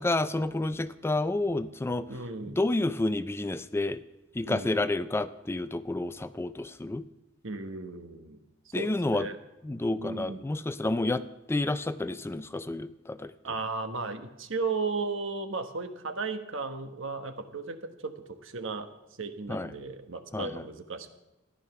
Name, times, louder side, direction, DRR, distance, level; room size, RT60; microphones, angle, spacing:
voice 1, 0.0-2.1 2.4-4.0 4.3-7.0 8.7-9.3 9.6-13.3 19.5-19.7 20.3-20.6, left 2 dB, 10° left, 14 dB, 0.4 m, -30 dB
voice 2, 2.1-2.6 4.5-4.8 7.4-8.4 8.7-9.4 9.9-10.4 13.4-18.1 18.4-18.9 19.2-21.1, right 3 dB, 70° right, 8 dB, 1.2 m, -35 dB
14.0 x 11.0 x 5.8 m, 1.0 s
head